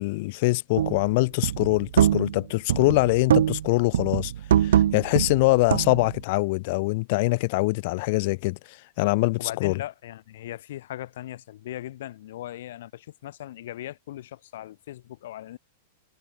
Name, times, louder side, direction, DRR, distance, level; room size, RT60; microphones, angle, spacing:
voice 1, 0.0-4.3 4.6-8.6 9.0-9.8, left 24 dB, 40° left, 0.5 m, -23 dB
sound 1, 0.8-1.1 1.4-2.4 2.7-3.7 3.9-6.2, right 10 dB, 80° right, 0.5 m, -23 dB
voice 2, 9.4-15.6, left 13 dB, 60° left, 1.1 m, -38 dB
supercardioid pair, 175°, 0 cm